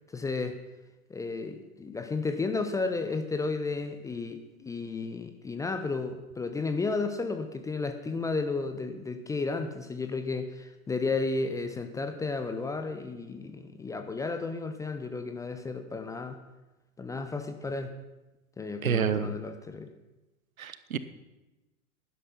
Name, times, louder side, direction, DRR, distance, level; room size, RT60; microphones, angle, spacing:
voice 1, 0.1-0.6 1.1-16.4 17.0-17.9 18.6-19.9, left 3 dB, 10° left, 8 dB, 0.6 m, -33 dB
voice 2, 18.8-19.3 20.6-21.0, right 7 dB, 70° right, 13 dB, 1.0 m, -28 dB
11.5 x 11.0 x 5.7 m, 1.0 s
figure-of-eight pair, 95°, 43 cm